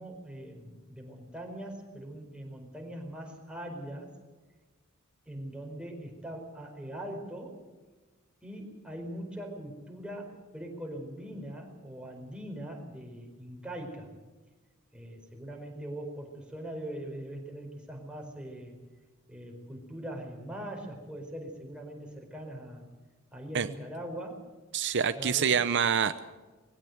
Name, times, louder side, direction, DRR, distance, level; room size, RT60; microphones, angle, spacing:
voice 1, 0.0-4.1 5.3-7.6 8.4-14.1 14.9-18.7 19.3-22.8 23.3-24.5 25.1-25.5, right 1 dB, 5° right, 1 dB, 4.6 m, -41 dB
voice 2, 24.7-26.3, right 7 dB, 60° right, 11 dB, 0.7 m, -26 dB
20.5 x 16.5 x 8.0 m, 1.3 s
head